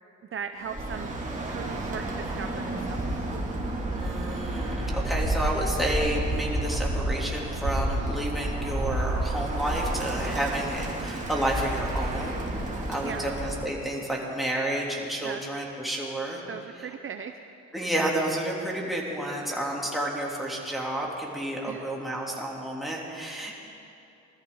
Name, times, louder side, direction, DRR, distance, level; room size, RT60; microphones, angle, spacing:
voice 1, 0.3-1.2 1.4-3.3 13.0-13.4 15.2-15.4 16.5-17.4 21.7-21.9, right 7 dB, 45° right, 7 dB, 0.6 m, -38 dB
Bird, 0.6-13.7, right 1 dB, 25° right, 2.7 m, -30 dB
voice 2, 4.0-16.4 17.7-23.5, right 1 dB, ahead, -4 dB, 3.1 m, -30 dB
22.0 x 13.5 x 3.9 m, 2.7 s
cardioid pair, 90°, 30 cm